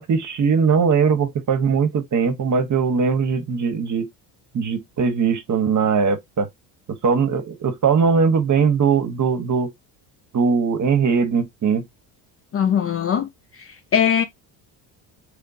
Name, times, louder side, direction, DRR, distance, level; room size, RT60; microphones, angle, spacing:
voice 1, 0.0-4.1 4.5-6.5 7.0-9.7 10.3-11.8, right 5 dB, 35° right, 1.0 m, -20 dB
voice 2, 12.5-13.3 13.5-14.2, left 8 dB, 30° left, 0.4 m, -21 dB
3.7 x 3.2 x 2.5 m
supercardioid pair, 80°, 49 cm